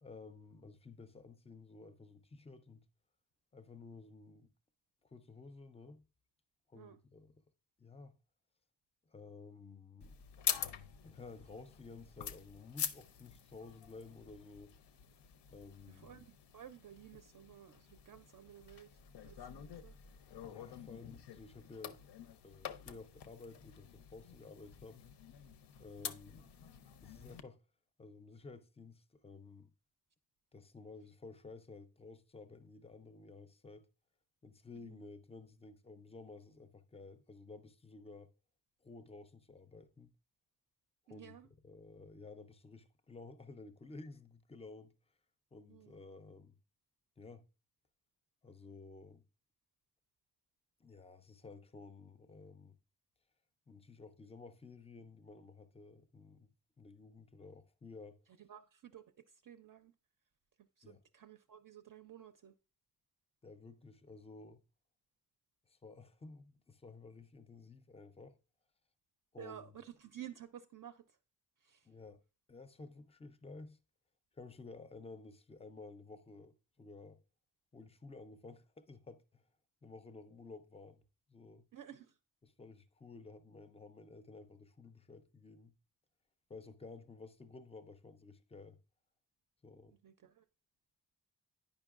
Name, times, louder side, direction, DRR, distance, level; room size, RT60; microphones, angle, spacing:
voice 1, 0.0-2.9 3.5-4.5 5.0-6.0 6.7-7.3 7.8-8.2 9.1-10.2 11.0-14.8 15.5-16.2 20.4-22.0 22.4-25.0 25.8-26.5 27.0-27.6 28.0-29.7 30.5-33.9 34.4-38.3 38.8-40.1 41.1-41.4 41.6-44.9 45.5-46.6 47.2-47.5 48.4-49.3 50.8-52.8 53.7-58.2 60.8-61.0 63.4-64.6 65.7-68.4 69.3-69.7 71.8-72.2 72.5-73.8 74.3-77.2 77.7-79.4 79.8-81.0 81.3-81.7 82.6-85.7 86.5-88.8 89.6-90.0, left 3 dB, 15° left, 0.4 m, -53 dB
sound 1, 10.0-27.4, left 8 dB, 80° left, 0.6 m, -46 dB
voice 2, 15.9-20.0 34.7-35.0 41.1-41.5 45.7-46.0 58.4-59.9 60.6-62.6 69.4-71.2 71.6-71.9 81.7-82.2 89.9-90.4, right 10 dB, 55° right, 0.5 m, -54 dB
9.3 x 5.3 x 2.4 m
wide cardioid pair, 145°, 40 cm